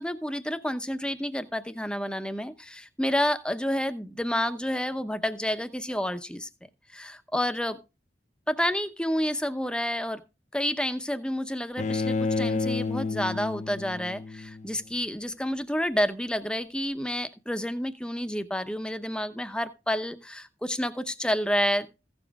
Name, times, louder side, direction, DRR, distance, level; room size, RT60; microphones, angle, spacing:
voice 1, 0.0-6.5 6.9-7.8 8.5-10.2 10.5-21.9, equal, 5° left, 11 dB, 0.7 m, -29 dB
Bowed string instrument, 11.8-14.8, left 4 dB, 40° left, 0.5 m, -30 dB
15.5 x 7.2 x 3.5 m, 0.28 s
head